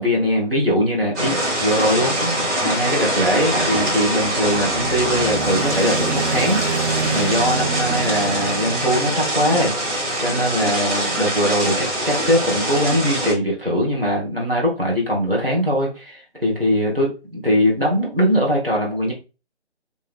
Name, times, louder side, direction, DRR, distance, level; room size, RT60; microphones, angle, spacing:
voice 1, 0.0-2.1 2.6-9.7 10.2-19.1, equal, ahead, -26 dB, 0.6 m, -21 dB
sound 1, 1.1-13.3, right 1 dB, 20° right, 1.5 m, -23 dB
sound 2, 4.1-9.9, right 5 dB, 60° right, 1.3 m, -28 dB
3.5 x 3.2 x 3.5 m, 0.30 s
figure-of-eight pair, 160°, 34 cm